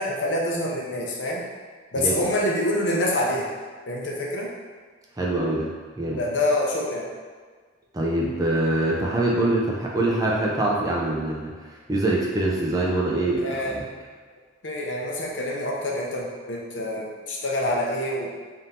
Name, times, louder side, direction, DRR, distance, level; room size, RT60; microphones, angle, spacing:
voice 1, 0.0-1.4 1.9-3.5 3.9-4.5 6.2-7.1 13.4-13.8 14.6-18.3, left 1 dB, 65° left, -3 dB, 0.7 m, -26 dB
voice 2, 5.2-5.7 6.0-6.2 7.9-11.5 11.9-13.9, right 1 dB, 20° right, -3 dB, 0.5 m, -24 dB
3.5 x 2.7 x 4.2 m, 1.5 s
head